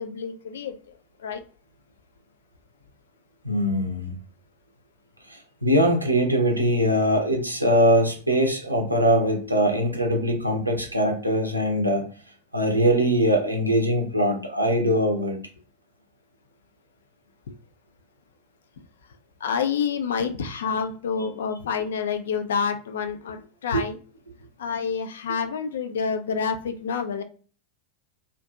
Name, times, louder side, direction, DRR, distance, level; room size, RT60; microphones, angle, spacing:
voice 1, 0.0-1.4 19.4-24.0 24.6-27.2, left 6 dB, 65° left, 0.3 m, -28 dB
voice 2, 3.4-4.1 5.3-12.1 12.5-15.4 23.7-23.8, equal, 90° right, 0.6 m, -22 dB
2.5 x 2.5 x 2.2 m
figure-of-eight pair, 90°, 0 cm